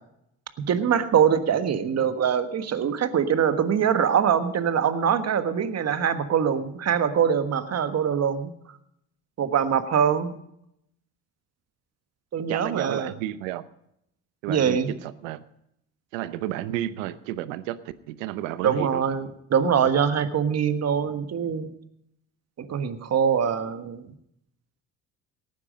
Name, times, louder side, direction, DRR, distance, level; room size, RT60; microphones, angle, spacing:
voice 1, 0.6-8.5 9.4-10.3 12.3-13.1 14.5-15.0 18.6-21.7 22.6-24.1, right 7 dB, 45° right, 9 dB, 1.5 m, -23 dB
voice 2, 12.4-13.6 14.4-15.4 16.1-19.0, right 13 dB, 80° right, 14 dB, 0.9 m, -32 dB
17.5 x 9.7 x 5.1 m, 0.76 s
hypercardioid pair, 70°, 37 cm